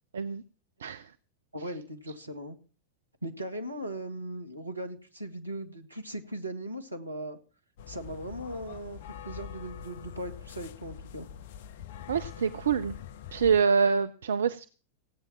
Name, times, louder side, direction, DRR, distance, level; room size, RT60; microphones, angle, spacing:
voice 1, 1.5-2.6 3.2-7.4 7.9-9.0 9.2-11.3, right 1 dB, 85° right, 6 dB, 1.9 m, -38 dB
sound 1, 7.8-13.6, left 9 dB, 55° left, 0.6 m, -44 dB
voice 2, 12.1-12.9 13.3-14.6, right 6 dB, 65° right, 12 dB, 0.6 m, -26 dB
17.0 x 8.9 x 5.8 m, 0.38 s
figure-of-eight pair, 90°, 0 cm